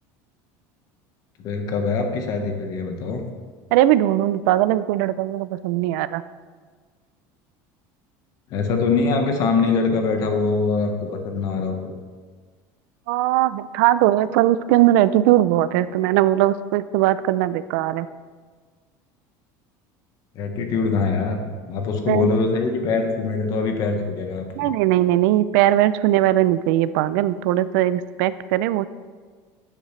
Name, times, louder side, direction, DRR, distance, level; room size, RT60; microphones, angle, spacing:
voice 1, 1.4-3.2 8.5-11.9 20.3-24.7, left 4 dB, 45° left, 4 dB, 1.2 m, -23 dB
voice 2, 3.7-6.2 13.1-18.1 22.1-22.3 24.6-28.9, right 14 dB, 75° right, 15 dB, 0.4 m, -19 dB
10.5 x 9.0 x 3.2 m, 1.5 s
cardioid pair, 165°, 9 cm